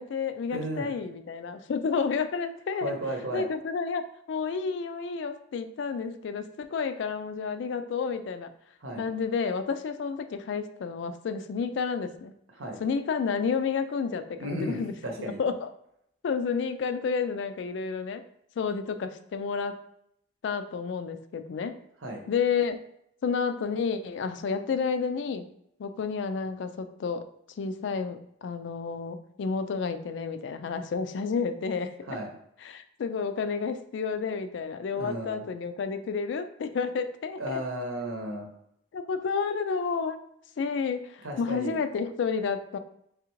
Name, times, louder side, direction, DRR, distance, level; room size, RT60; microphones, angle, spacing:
voice 1, 0.0-3.0 3.3-8.5 9.0-12.3 12.8-14.9 15.2-15.7 16.2-18.2 18.6-19.8 20.4-21.8 22.3-22.8 23.2-25.5 25.8-27.3 27.6-32.1 32.6-37.6 38.9-40.2 40.6-42.8, left 5 dB, 60° left, 10 dB, 0.3 m, -30 dB
voice 2, 0.5-0.9 2.8-3.5 8.8-9.1 12.5-12.8 14.4-15.4 22.0-22.2 32.1-32.3 34.9-35.4 37.4-38.5 41.2-41.8, right 1 dB, 90° right, 2 dB, 0.9 m, -34 dB
3.6 x 3.3 x 3.0 m, 0.74 s
head